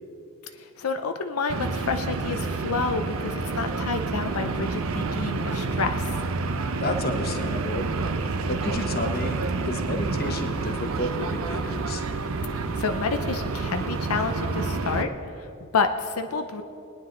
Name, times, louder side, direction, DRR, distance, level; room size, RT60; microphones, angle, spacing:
voice 1, 0.6-6.1 12.7-16.6, left 4 dB, 85° left, 7 dB, 0.6 m, -29 dB
sound 1, 1.5-15.0, right 3 dB, 75° right, 0.7 m, -29 dB
voice 2, 6.8-7.9 8.5-12.0, left 1 dB, 45° left, 5 dB, 1.0 m, -31 dB
21.0 x 9.7 x 3.8 m, 2.7 s
head